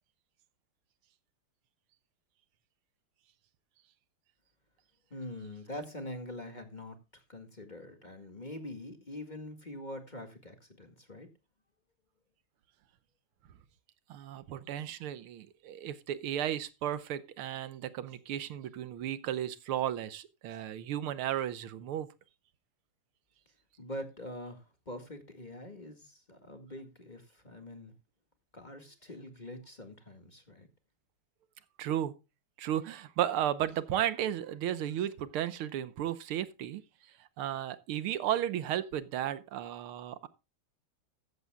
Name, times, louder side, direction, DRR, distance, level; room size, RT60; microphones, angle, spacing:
voice 1, 5.1-11.3 23.8-27.9 28.5-30.7, left 1 dB, 20° left, 1.8 m, -44 dB
voice 2, 14.1-22.1 31.8-32.1 32.6-36.8 37.4-40.3, right 11 dB, 85° right, 1.7 m, -34 dB
14.5 x 13.5 x 2.3 m
omnidirectional pair, 2.4 m